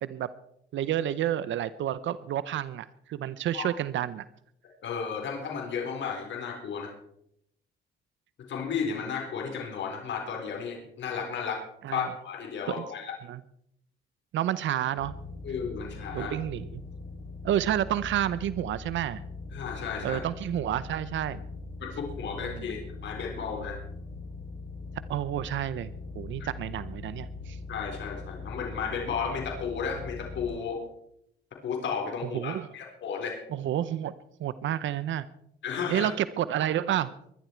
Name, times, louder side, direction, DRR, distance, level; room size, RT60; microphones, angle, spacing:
voice 1, 0.7-4.2 11.8-12.1 12.7-12.8 13.3-13.4 14.3-15.2 16.1-16.8 17.4-19.2 20.0-21.4 22.4-22.8 25.1-27.6 32.3-32.7 33.5-34.1 34.4-35.2 35.9-37.1, right 11 dB, 75° right, 16 dB, 0.8 m, -30 dB
voice 2, 4.8-6.9 8.5-11.6 11.9-13.1 15.4-16.3 19.5-20.2 21.8-23.8 26.4-26.5 27.7-30.8 31.6-33.4 35.6-36.1, left 6 dB, 65° left, 1 dB, 4.2 m, -33 dB
sound 1, 14.9-30.5, left 3 dB, 85° left, 6.6 m, -41 dB
22.5 x 11.5 x 4.6 m, 0.73 s
cardioid pair, 90°, 20 cm